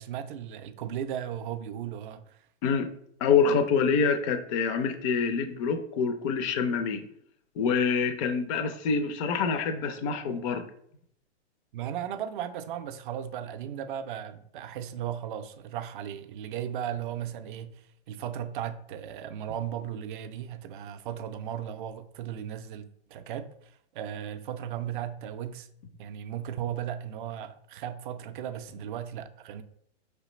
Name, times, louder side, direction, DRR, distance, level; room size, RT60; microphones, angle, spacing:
voice 1, 0.0-2.4 11.7-25.7 26.0-29.6, right 10 dB, 50° right, 0.5 m, -36 dB
voice 2, 3.2-7.1 7.6-10.7, left 5 dB, 30° left, 0.4 m, -26 dB
4.8 x 3.3 x 3.0 m
hypercardioid pair, 130°, 34 cm